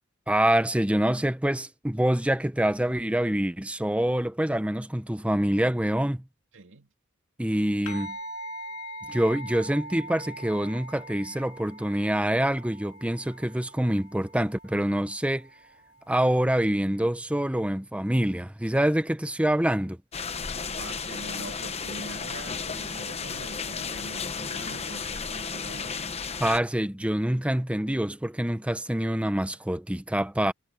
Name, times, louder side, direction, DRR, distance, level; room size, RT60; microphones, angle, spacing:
voice 1, 0.3-6.2 7.4-8.2 9.1-15.5 16.1-20.0 26.4-30.5, right 1 dB, 5° right, 0.7 m, -26 dB
voice 2, 6.5-6.9 20.8-26.2, right 2 dB, 60° right, 2.5 m, -43 dB
sound 1, 7.9-16.6, right 1 dB, 80° left, 2.7 m, -42 dB
sound 2, 20.1-26.6, left 5 dB, 30° left, 1.0 m, -33 dB
head